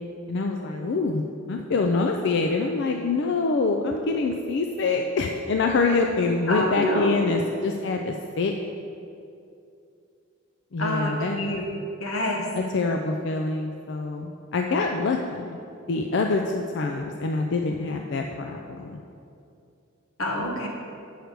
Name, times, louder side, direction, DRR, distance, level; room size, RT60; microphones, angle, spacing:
voice 1, 0.3-8.5 10.7-11.4 12.6-15.6 15.9-19.0, left 3 dB, 55° left, 3 dB, 0.4 m, -25 dB
voice 2, 6.5-7.3 10.8-11.6 12.0-12.4 20.2-20.7, left 1 dB, 85° left, 0 dB, 1.4 m, -27 dB
8.2 x 6.4 x 4.6 m, 2.6 s
head